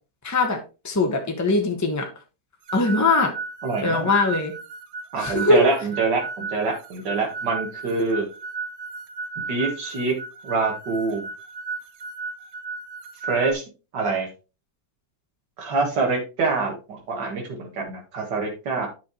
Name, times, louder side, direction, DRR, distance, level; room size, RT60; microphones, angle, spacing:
voice 1, 0.2-0.6 0.8-2.1 2.7-3.3 3.8-4.5 5.2-5.7, left 3 dB, 10° left, 3 dB, 1.1 m, -21 dB
sound 1, 2.7-13.5, right 4 dB, 55° right, 0.8 m, -34 dB
voice 2, 3.6-4.1 5.1-8.3 9.5-10.1 10.4-11.2 13.3-13.6 13.9-14.3 15.6-18.9, right 3 dB, 80° right, 0 dB, 2.4 m, -25 dB
9.5 x 5.6 x 3.1 m, 0.31 s
omnidirectional pair, 1.9 m